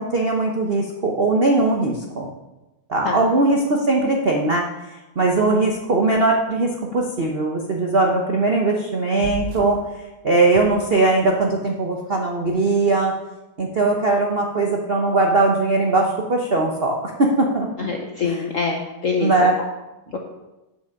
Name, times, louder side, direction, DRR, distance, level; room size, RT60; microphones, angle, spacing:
voice 1, 0.0-2.3 2.9-4.6 5.2-9.8 10.2-13.1 13.6-17.9 19.2-19.6, right 2 dB, 60° right, 0 dB, 0.6 m, -20 dB
sound 1, 9.2-9.9 10.5-11.4, right 8 dB, 90° right, 1.6 m, -34 dB
voice 2, 17.8-19.3 20.1-20.2, left 5 dB, 65° left, 1 dB, 0.8 m, -24 dB
7.7 x 6.0 x 5.8 m, 1.0 s
omnidirectional pair, 2.3 m